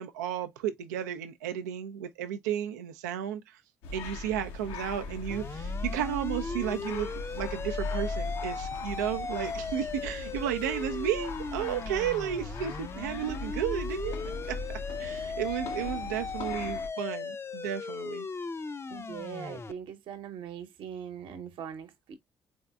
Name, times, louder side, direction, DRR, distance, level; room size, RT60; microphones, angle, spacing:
voice 1, 0.0-3.6 3.9-14.2 14.5-18.3, right 10 dB, 85° right, 0.4 m, -33 dB
sound 1, 3.8-16.9, left 3 dB, 75° left, 0.7 m, -39 dB
sound 2, 5.3-19.7, left 4 dB, 30° left, 0.5 m, -38 dB
voice 2, 18.9-22.2, right 8 dB, 65° right, 0.9 m, -41 dB
3.9 x 3.5 x 2.2 m
hypercardioid pair, 50°, 9 cm